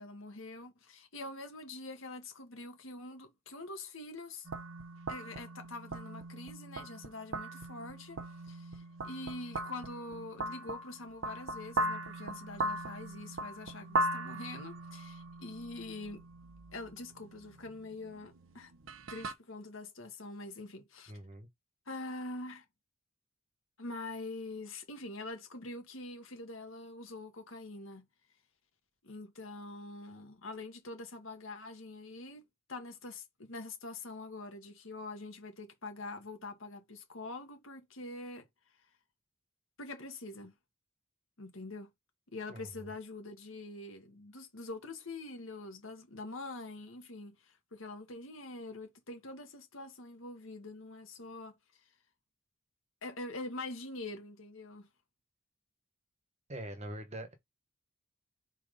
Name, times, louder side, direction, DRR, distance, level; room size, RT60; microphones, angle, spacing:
voice 1, 0.0-4.5 5.1-16.3 16.7-18.7 19.1-21.1 21.9-22.7 23.8-28.1 29.0-38.9 39.8-40.5 41.4-41.9 42.3-51.9 53.0-54.9, left 2 dB, 75° left, 1.7 m, -45 dB
sound 1, 4.4-19.3, right 1 dB, 75° right, 1.0 m, -39 dB
voice 2, 21.1-21.5 42.5-42.9 56.5-57.3, right 1 dB, 30° right, 1.4 m, -43 dB
4.2 x 4.2 x 5.3 m
head